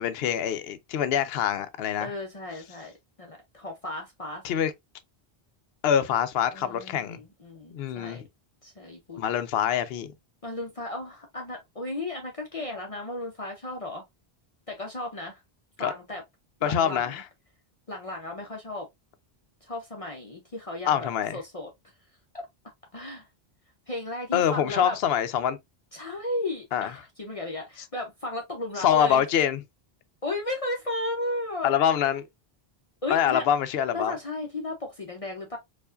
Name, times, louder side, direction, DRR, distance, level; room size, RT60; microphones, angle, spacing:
voice 1, 0.0-2.1 4.4-4.7 5.8-7.2 7.7-8.3 9.2-10.1 15.8-15.9 16.6-17.2 20.8-21.4 24.3-25.6 26.7-26.9 28.8-29.6 31.6-32.2 33.1-34.1, left 9 dB, 75° left, 0.8 m, -25 dB
voice 2, 2.0-2.9 3.2-4.4 6.5-8.2 8.6-9.2 10.4-14.0 14.7-15.4 15.8-16.2 16.6-17.2 17.9-18.9 19.6-21.7 22.3-22.5 22.9-23.3 23.9-25.0 25.9-29.2 30.2-31.8 33.0-33.4 33.9-35.6, left 2 dB, 40° left, 0.7 m, -34 dB
4.5 x 2.5 x 2.4 m
omnidirectional pair, 1.0 m